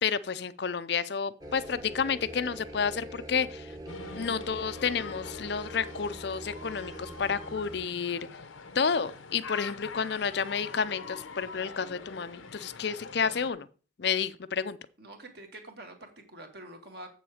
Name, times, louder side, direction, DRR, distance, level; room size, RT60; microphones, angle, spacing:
voice 1, 0.0-3.7 4.1-8.2 8.7-13.7 14.0-14.8, left 6 dB, 55° left, 0.5 m, -30 dB
sound 1, 1.4-7.9, right 1 dB, 20° right, 1.1 m, -44 dB
sound 2, 3.9-13.5, left 4 dB, 90° left, 0.9 m, -44 dB
voice 2, 15.0-17.1, right 1 dB, 55° right, 1.9 m, -46 dB
7.8 x 7.0 x 4.9 m
head